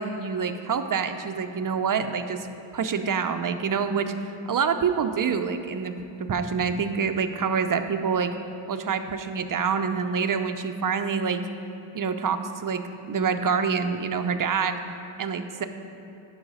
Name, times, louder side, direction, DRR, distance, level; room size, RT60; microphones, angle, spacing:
voice 1, 0.0-2.5 2.7-4.1 4.5-5.9 6.3-8.3 8.7-11.4 11.9-14.8 15.2-15.7, right 6 dB, 45° right, 8 dB, 0.6 m, -26 dB
10.5 x 4.9 x 5.4 m, 2.9 s
cardioid pair, 75°, 49 cm